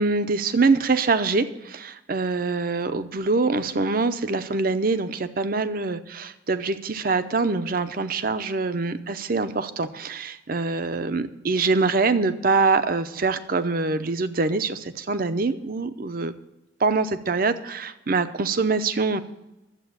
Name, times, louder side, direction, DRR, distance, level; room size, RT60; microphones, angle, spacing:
voice 1, 0.0-16.3 16.8-19.2, right 3 dB, 50° right, 11 dB, 0.7 m, -24 dB
11.5 x 7.8 x 8.1 m, 0.95 s
head